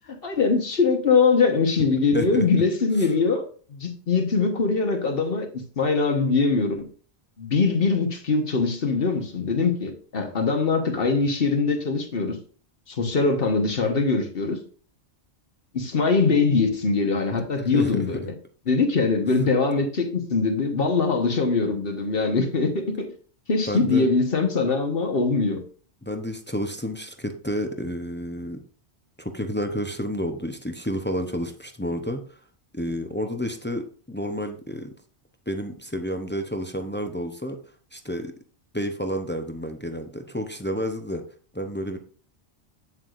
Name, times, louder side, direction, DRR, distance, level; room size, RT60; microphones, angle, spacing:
voice 1, 0.2-3.4 3.7-5.5 5.8-6.8 7.4-12.4 12.9-14.6 15.7-18.3 18.7-23.1 23.5-25.6, left 4 dB, 60° left, 1.4 m, -22 dB
voice 2, 2.1-2.5 17.7-18.1 23.7-24.1 26.0-28.6 29.2-32.2 32.7-34.9 35.5-37.6 37.9-38.3 38.7-41.2 41.5-42.0, equal, 15° left, 0.6 m, -30 dB
8.1 x 7.4 x 2.5 m
omnidirectional pair, 1.1 m